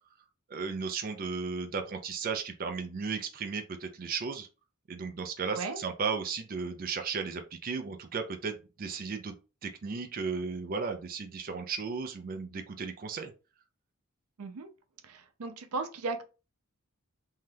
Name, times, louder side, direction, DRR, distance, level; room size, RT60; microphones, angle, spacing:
voice 1, 0.5-4.5 4.9-9.3 9.6-13.3, right 5 dB, 40° right, 0.4 m, -35 dB
voice 2, 14.4-14.7 15.0-16.2, right 3 dB, 90° right, 0.5 m, -36 dB
2.7 x 2.3 x 3.3 m
head